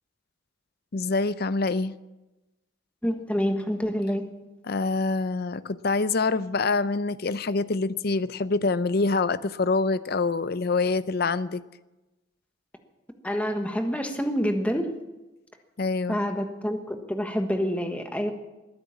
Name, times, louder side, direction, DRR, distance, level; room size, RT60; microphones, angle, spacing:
voice 1, 0.9-1.9 4.7-11.6 15.8-16.2, left 3 dB, 55° left, 15 dB, 0.6 m, -25 dB
voice 2, 3.0-4.3 13.2-14.9 16.1-18.3, equal, 5° left, 5 dB, 1.3 m, -27 dB
20.5 x 9.6 x 7.2 m, 1.1 s
head